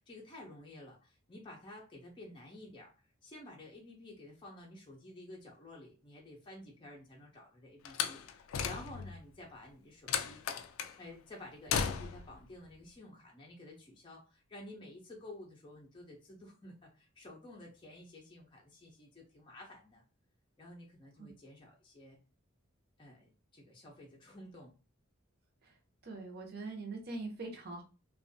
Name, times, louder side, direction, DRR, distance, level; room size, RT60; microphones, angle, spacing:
voice 1, 0.0-2.9 3.2-10.4 11.0-20.0 20.6-22.2 23.0-24.7, left 1 dB, 25° left, -2 dB, 0.5 m, -52 dB
Slam, 7.8-9.2 10.1-11.0 11.7-12.3, left 7 dB, 80° left, 0.3 m, -35 dB
voice 2, 26.0-27.8, right 3 dB, 50° right, 1 dB, 0.7 m, -42 dB
2.6 x 2.3 x 2.6 m, 0.33 s
head